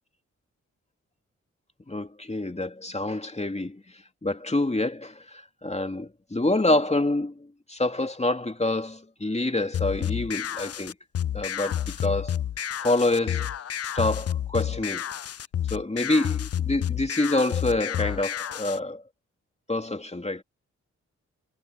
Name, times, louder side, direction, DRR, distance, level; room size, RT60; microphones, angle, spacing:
voice 1, 1.9-3.8 4.2-10.9 11.3-12.4 12.8-13.5 13.8-15.0 15.7-19.0 19.7-20.4, left 2 dB, 20° left, 2.6 m, -27 dB
sound 1, 9.7-18.8, left 10 dB, 50° left, 0.6 m, -30 dB
supercardioid pair, 45°, 30 cm